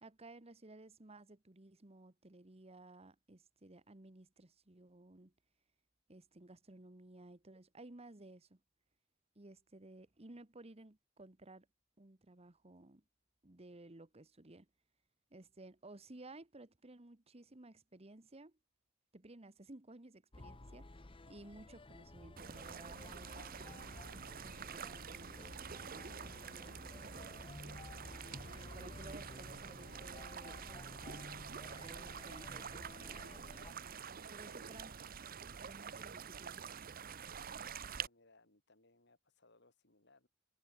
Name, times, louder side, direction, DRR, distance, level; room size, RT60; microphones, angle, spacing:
voice 1, 0.0-5.3 6.1-8.6 9.3-11.7 12.0-13.0 13.4-14.7 15.3-18.6 19.1-24.1 24.4-27.5 28.5-31.2 31.7-33.6 34.3-34.9 35.6-36.6, right 2 dB, 30° right, 1.3 m, -57 dB
sound 1, 20.3-33.7, left 2 dB, 25° left, 1.0 m, -53 dB
sound 2, 22.4-38.1, right 7 dB, 45° right, 0.9 m, -48 dB
voice 2, 34.2-35.0 35.8-36.1 37.3-40.3, left 2 dB, 60° left, 7.6 m, -69 dB
head